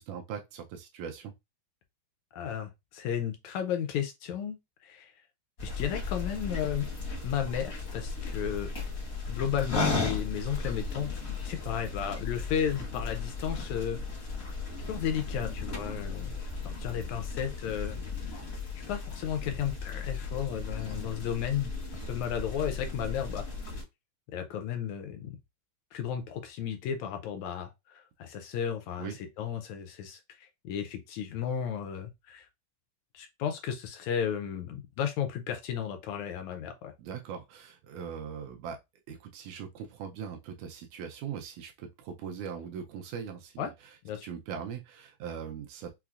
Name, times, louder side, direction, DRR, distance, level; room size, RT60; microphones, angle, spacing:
voice 1, 0.0-1.3 29.0-29.2 37.0-38.8 39.1-44.0 44.2-45.9, right 7 dB, 80° right, 1.8 m, -40 dB
voice 2, 2.3-4.6 4.8-5.1 5.6-6.9 7.2-8.7 9.3-11.1 11.4-14.0 14.9-16.5 16.8-18.0 18.9-21.7 22.1-23.5 24.3-25.4 25.9-29.1 29.4-32.5 33.1-36.9 43.6-43.7 44.0-44.3, left 8 dB, 80° left, 1.7 m, -33 dB
sound 1, 5.6-23.8, left 4 dB, 55° left, 0.9 m, -35 dB
5.6 x 2.0 x 2.4 m
omnidirectional pair, 3.7 m